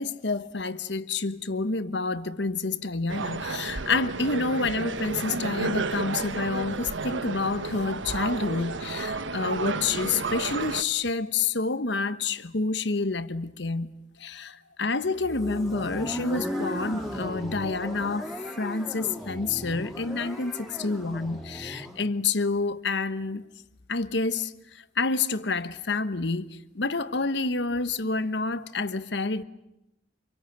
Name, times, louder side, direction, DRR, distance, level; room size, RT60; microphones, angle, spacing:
voice 1, 0.0-13.9 14.2-18.3 18.6-23.4 23.9-29.4, left 3 dB, 65° left, 1.2 m, -28 dB
sound 1, 3.1-10.8, right 3 dB, 85° right, 1.1 m, -32 dB
sound 2, 15.2-22.0, equal, ahead, 3.6 m, -36 dB
27.5 x 23.5 x 9.2 m
head